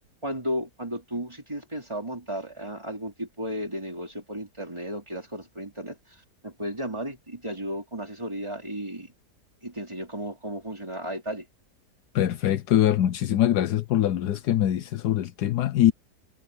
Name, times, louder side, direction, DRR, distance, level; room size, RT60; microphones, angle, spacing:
voice 1, 0.2-9.1 9.6-11.5, equal, 15° right, 3.5 m, -34 dB
voice 2, 12.1-15.9, left 12 dB, 75° left, 1.2 m, -23 dB
omnidirectional pair, 1.8 m